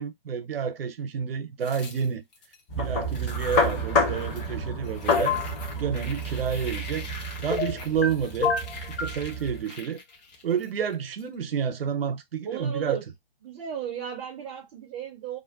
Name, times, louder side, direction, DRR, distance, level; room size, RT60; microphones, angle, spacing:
voice 1, 0.0-2.2 2.8-5.4 5.8-7.1 7.4-8.5 9.0-10.0 10.4-13.0, right 7 dB, 75° right, 0.6 m, -29 dB
sound 1, 1.6-2.6 3.0-4.6 4.8-11.2, left 2 dB, 45° left, 0.9 m, -42 dB
sound 2, 2.7-9.6, left 1 dB, 25° left, 0.7 m, -29 dB
sound 3, 5.1-5.5 7.5-8.1 8.4-9.2, left 5 dB, 80° left, 0.7 m, -27 dB
voice 2, 12.4-13.1 13.4-15.4, right 9 dB, 15° right, 0.4 m, -35 dB
2.5 x 2.2 x 2.3 m
hypercardioid pair, 135°, 29 cm